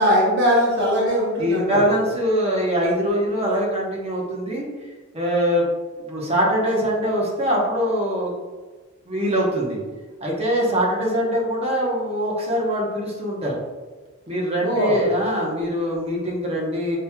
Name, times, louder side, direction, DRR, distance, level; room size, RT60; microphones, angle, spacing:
voice 1, 0.0-1.8 14.6-15.0, equal, 55° right, -6 dB, 1.0 m, -20 dB
voice 2, 1.4-4.6 5.1-5.6 6.0-8.3 9.1-9.8 10.2-13.6 14.3-17.0, equal, 30° right, -3 dB, 0.9 m, -23 dB
5.4 x 2.8 x 2.3 m, 1.3 s
head